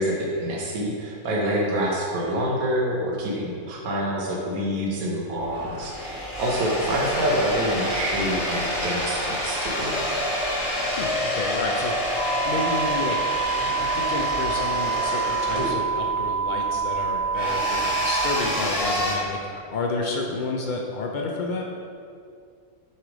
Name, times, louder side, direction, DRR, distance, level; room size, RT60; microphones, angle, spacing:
voice 1, 0.0-10.1, equal, 75° right, -3 dB, 1.4 m, -26 dB
sound 1, 5.4-19.1, left 1 dB, 25° left, 1.4 m, -28 dB
voice 2, 10.8-12.2 12.4-21.7, left 3 dB, 90° left, 0 dB, 0.4 m, -31 dB
sound 2, 12.1-18.4, right 5 dB, 45° left, 0.6 m, -26 dB
7.1 x 3.2 x 5.0 m, 2.3 s
omnidirectional pair, 1.5 m